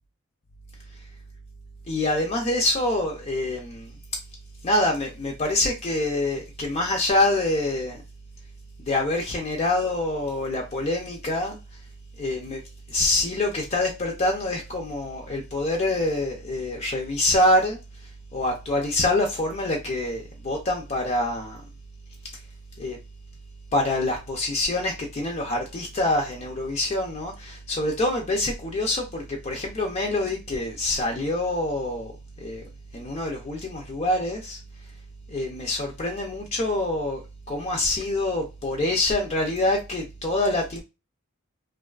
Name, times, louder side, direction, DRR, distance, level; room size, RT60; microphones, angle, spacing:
voice 1, 1.9-3.9 4.6-8.0 8.8-11.6 12.2-12.6 12.9-17.8 18.3-21.6 22.8-23.0 23.7-32.1 32.4-32.6 32.9-34.6 35.3-37.2 37.5-40.8, left 1 dB, 30° left, 0.3 m, -25 dB
2.5 x 2.3 x 2.3 m
head